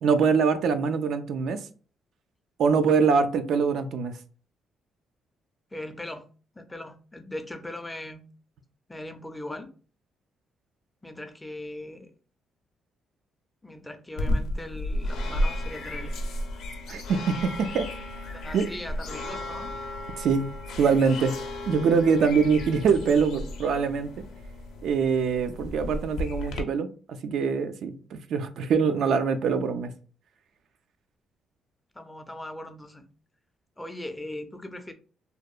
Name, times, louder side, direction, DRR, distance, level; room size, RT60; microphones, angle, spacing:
voice 1, 0.0-1.6 2.6-4.1 16.9-17.9 18.5-18.7 20.2-20.5 20.8-21.3 21.7-24.1 24.8-29.9, right 5 dB, 70° right, 0.3 m, -24 dB
voice 2, 5.7-6.2 6.6-8.2 8.9-9.7 11.0-12.1 13.6-16.2 18.3-19.7 31.9-33.1 33.8-34.9, left 1 dB, 10° left, 0.4 m, -39 dB
sound 1, 14.2-26.6, left 1 dB, 80° left, 0.5 m, -33 dB
2.7 x 2.1 x 2.3 m
cardioid pair, 90°, 0 cm